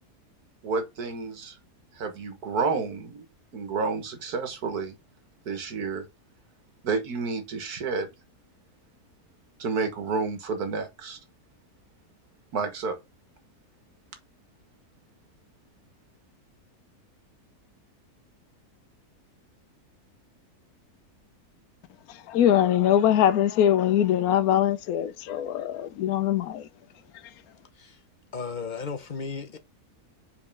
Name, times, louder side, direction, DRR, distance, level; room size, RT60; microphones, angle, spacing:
voice 1, 0.6-1.6 2.0-3.2 3.5-4.9 5.5-6.1 6.8-8.1 9.6-11.2 12.5-13.0, right 4 dB, 75° right, 1.8 m, -30 dB
voice 2, 22.1-26.7, left 10 dB, 75° left, 1.1 m, -22 dB
voice 3, 28.3-29.6, left 5 dB, 40° left, 0.8 m, -35 dB
5.4 x 4.1 x 5.3 m
omnidirectional pair, 1.6 m